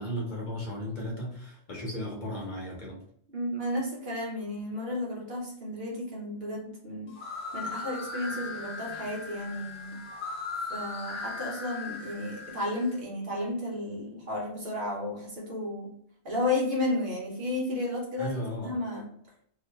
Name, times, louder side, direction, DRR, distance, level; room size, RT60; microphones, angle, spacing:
voice 1, 0.0-3.0 18.2-18.7, equal, 50° left, -2 dB, 0.9 m, -35 dB
voice 2, 3.3-7.1 7.5-10.0 10.7-15.9 16.2-18.3 18.6-19.1, left 1 dB, 65° right, -4 dB, 1.3 m, -32 dB
sound 1, 7.1-12.9, left 3 dB, 75° left, 1.0 m, -38 dB
2.8 x 2.5 x 3.2 m, 0.65 s
omnidirectional pair, 1.1 m